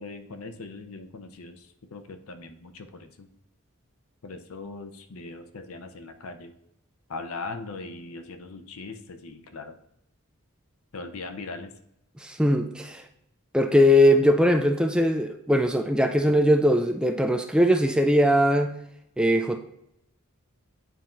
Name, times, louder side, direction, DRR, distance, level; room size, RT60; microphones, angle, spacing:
voice 1, 0.0-3.3 4.2-6.5 7.1-9.8 10.9-11.8, left 3 dB, 75° left, 7 dB, 0.6 m, -40 dB
voice 2, 12.2-13.0 13.5-18.7 19.2-19.6, equal, 5° right, 6 dB, 0.3 m, -20 dB
9.2 x 4.2 x 2.6 m, 0.79 s
head